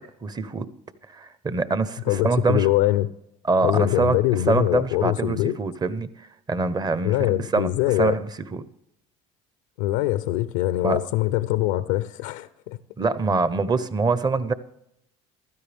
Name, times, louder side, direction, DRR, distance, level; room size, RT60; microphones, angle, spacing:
voice 1, 0.2-0.7 1.1-2.7 3.4-4.2 4.5-8.6 10.8-11.0 13.0-14.5, right 3 dB, 25° right, 14 dB, 0.9 m, -24 dB
voice 2, 2.1-3.1 3.6-5.6 7.0-8.2 9.8-12.8, left 15 dB, 90° left, 14 dB, 0.5 m, -23 dB
15.0 x 12.5 x 3.5 m, 0.79 s
supercardioid pair, 85°, 15 cm